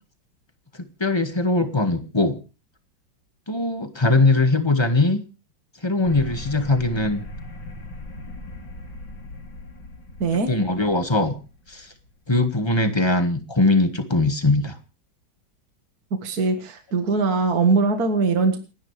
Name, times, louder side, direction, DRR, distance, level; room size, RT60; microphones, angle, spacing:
voice 1, 0.8-2.4 3.5-5.2 5.8-7.2 10.5-11.4 11.7-11.9 12.3-14.8, left 2 dB, 15° left, 7 dB, 1.7 m, -21 dB
sound 1, 6.0-12.5, left 2 dB, 85° left, 3.2 m, -39 dB
voice 2, 16.2-18.6, right 4 dB, 50° right, 6 dB, 2.1 m, -21 dB
29.5 x 10.5 x 3.3 m, 0.33 s
omnidirectional pair, 2.1 m